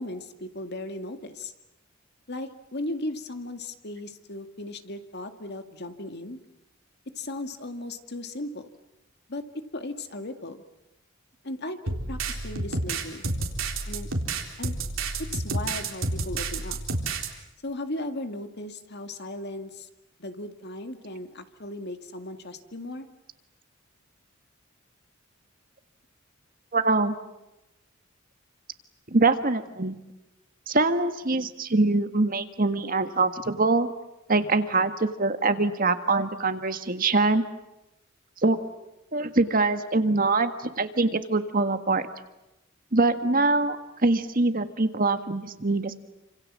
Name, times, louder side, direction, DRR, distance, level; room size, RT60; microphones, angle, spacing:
voice 1, 0.0-1.5 2.3-6.4 7.2-8.7 9.3-9.4 9.7-10.6 11.4-13.3 13.9-14.1 14.6-14.8 15.2-16.8 17.6-19.9 20.2-23.1, left 2 dB, 55° left, 7 dB, 2.2 m, -36 dB
sound 1, 11.9-17.3, right 3 dB, 75° right, 3.9 m, -30 dB
voice 2, 26.7-27.1 29.1-30.0 30.7-33.9 34.3-37.4 38.4-38.6 39.1-42.1 42.9-43.8 44.0-45.9, right 3 dB, 45° right, 9 dB, 1.6 m, -23 dB
29.0 x 27.0 x 7.6 m, 0.93 s
head